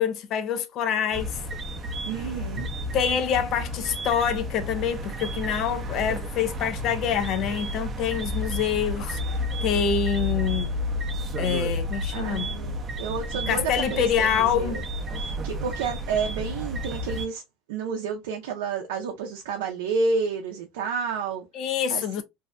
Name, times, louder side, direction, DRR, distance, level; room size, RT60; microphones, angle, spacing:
voice 1, 0.0-1.4 2.9-9.2 9.6-10.7 11.4-12.5 13.5-14.8 21.5-22.2, left 8 dB, 55° left, 0.5 m, -26 dB
sound 1, 1.1-17.3, left 1 dB, 35° right, 0.5 m, -31 dB
voice 2, 2.0-2.7 12.1-14.8 15.1-17.4 17.7-21.5 21.9-22.0, right 5 dB, 85° right, 0.4 m, -30 dB
2.6 x 2.1 x 2.3 m
supercardioid pair, 105°, 0 cm